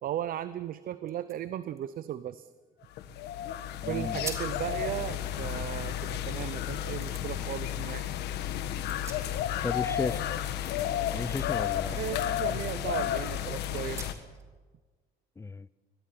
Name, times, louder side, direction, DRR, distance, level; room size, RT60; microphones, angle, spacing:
voice 1, 0.0-2.5 3.9-8.0 11.9-14.1, right 11 dB, 60° right, 14 dB, 0.7 m, -36 dB
sound 1, 0.7-0.8 1.0-3.2 3.6-3.8 4.1-4.6 5.0-6.4 7.0-7.3 8.6-9.7 10.0-11.8 12.1-12.3 12.8-12.9 13.7-14.5, right 2 dB, 15° right, 3.7 m, -46 dB
sound 2, 3.0-14.1, left 11 dB, 80° left, 1.4 m, -32 dB
voice 2, 3.8-4.2 9.6-10.2 11.1-12.0 15.4-15.7, left 3 dB, 15° left, 19 dB, 0.6 m, -34 dB
25.0 x 20.5 x 5.9 m, 1.4 s
cardioid pair, 110°, 17 cm